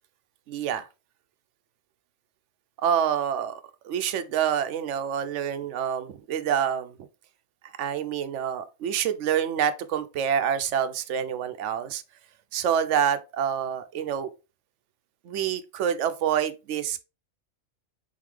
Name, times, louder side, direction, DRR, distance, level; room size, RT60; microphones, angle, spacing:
voice 1, 0.5-0.9 2.8-7.0 7.8-12.0 12.5-14.3 15.2-17.0, right 8 dB, 85° right, 0.9 m, -27 dB
4.1 x 3.8 x 3.2 m
omnidirectional pair, 1.2 m